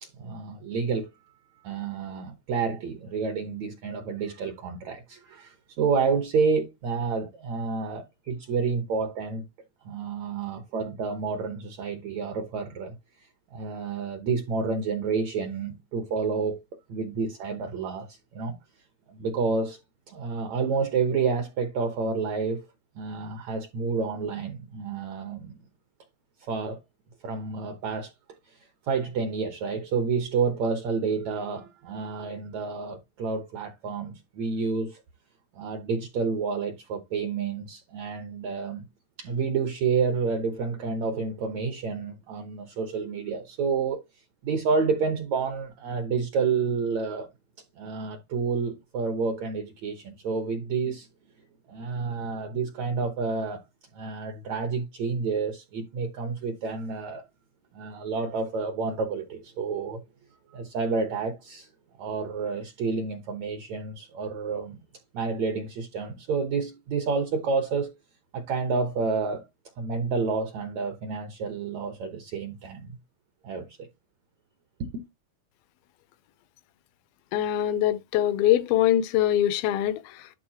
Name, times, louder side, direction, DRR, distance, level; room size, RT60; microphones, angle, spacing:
voice 1, 0.0-1.1 1.6-9.4 9.9-12.9 13.5-16.6 16.9-18.6 19.1-19.8 20.1-22.7 23.0-25.5 26.4-26.8 27.2-28.1 28.8-35.0 35.5-38.8 39.2-44.0 44.4-47.3 47.8-51.1 51.7-53.6 53.9-57.2 57.7-60.0 60.5-61.7 62.0-64.8 65.1-67.9 68.3-69.4 69.8-72.9 73.4-73.9 74.8-75.0, right 5 dB, 65° right, 1.9 m, -29 dB
voice 2, 77.3-80.3, left 12 dB, 85° left, 2.6 m, -23 dB
11.5 x 3.9 x 2.9 m
omnidirectional pair, 4.2 m